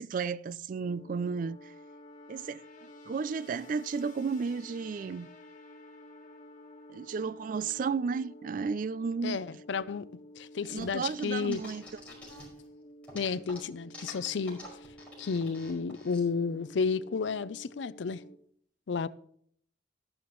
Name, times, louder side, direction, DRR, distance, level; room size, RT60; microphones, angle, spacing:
voice 1, 0.0-1.7 2.3-2.6 3.1-5.3 6.9-9.4 10.7-11.8, right 5 dB, 45° right, 0.3 m, -33 dB
sound 1, 0.7-18.3, equal, 45° left, 1.5 m, -52 dB
voice 2, 9.2-10.1 10.4-11.6 13.1-14.6 15.2-18.2 18.9-19.1, left 5 dB, 80° left, 0.5 m, -32 dB
sound 2, 10.8-12.7 13.0-16.2, left 2 dB, 10° left, 5.1 m, -48 dB
12.5 x 11.0 x 3.1 m
head